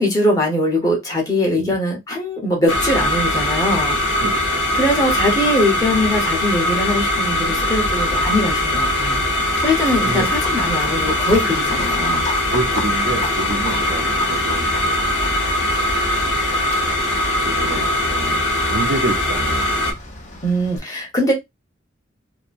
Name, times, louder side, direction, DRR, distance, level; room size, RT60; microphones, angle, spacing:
voice 1, 0.0-4.0 4.7-9.2 9.6-12.2 20.4-21.3, left 1 dB, 20° left, 1.0 m, -21 dB
sound 1, 2.7-19.9, left 1 dB, 90° left, 1.1 m, -21 dB
voice 2, 4.2-4.8 10.1-10.3 12.5-14.8 16.7-17.0 17.4-19.7, right 2 dB, 75° right, 0.6 m, -28 dB
Livestock farm animals working animals, 9.5-20.8, left 2 dB, 40° left, 0.6 m, -35 dB
2.8 x 2.2 x 2.5 m
head